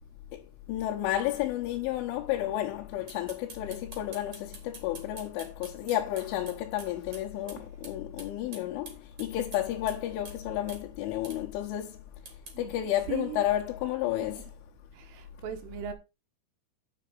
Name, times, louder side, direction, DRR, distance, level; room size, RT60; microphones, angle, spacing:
voice 1, 0.7-12.1 12.6-14.5, left 13 dB, 80° left, 3.5 m, -31 dB
sound 1, 3.1-7.2 7.5-7.6 7.8-7.9 8.2-10.0 10.2-10.4 10.7-10.8 11.2-11.4 12.3-12.6, right 3 dB, 35° right, 3.2 m, -46 dB
voice 2, 12.5-13.5 14.2-14.5 14.9-15.9, right 10 dB, 80° right, 3.9 m, -39 dB
8.8 x 6.8 x 5.2 m
omnidirectional pair, 5.8 m